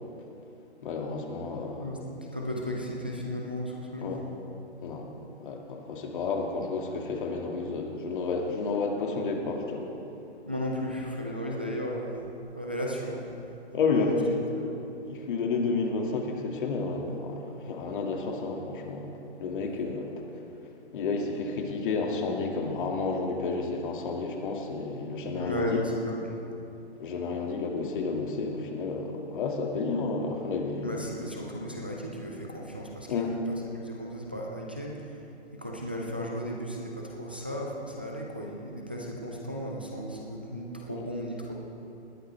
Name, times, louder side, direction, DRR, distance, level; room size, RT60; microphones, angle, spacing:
voice 1, 0.8-1.9 4.0-4.2 4.8-5.1 5.4-9.9 13.7-14.3 15.1-19.1 19.4-20.1 20.9-25.8 27.0-31.3 33.1-33.4 40.9-41.1, left 4 dB, 45° left, 1 dB, 2.2 m, -31 dB
voice 2, 2.3-4.2 10.5-12.2 12.6-13.3 13.9-14.1 14.6-14.8 25.3-26.2 30.8-35.1 35.5-41.5, equal, 10° right, -1 dB, 0.3 m, -35 dB
20.0 x 14.5 x 3.4 m, 2.8 s
hypercardioid pair, 145°, 34 cm